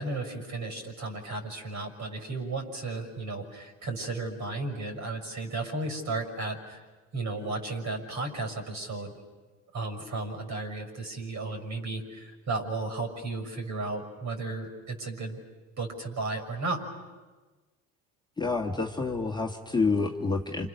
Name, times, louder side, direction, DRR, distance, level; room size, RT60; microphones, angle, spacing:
voice 1, 0.0-6.8 7.1-9.1 9.7-15.4 15.8-16.8, right 3 dB, 50° right, 5 dB, 6.4 m, -34 dB
voice 2, 18.4-20.7, left 4 dB, 10° left, 1 dB, 1.8 m, -28 dB
29.5 x 27.0 x 6.7 m, 1.3 s
supercardioid pair, 80°, 37 cm